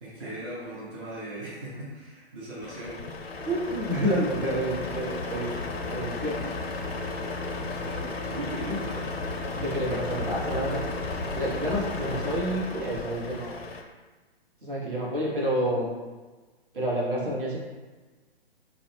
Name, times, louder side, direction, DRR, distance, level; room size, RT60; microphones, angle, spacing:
voice 1, 0.0-3.0 7.6-9.1, right 1 dB, 25° right, -8 dB, 0.4 m, -39 dB
Truck, 2.6-13.8, left 3 dB, 75° left, 0.5 m, -33 dB
voice 2, 3.5-5.5 5.8-6.4 8.6-8.7 9.5-10.8 11.3-13.6 14.6-15.9 16.7-17.6, right 1 dB, 55° right, -5 dB, 1.0 m, -29 dB
2.4 x 2.0 x 3.2 m, 1.3 s
figure-of-eight pair, 125°, 31 cm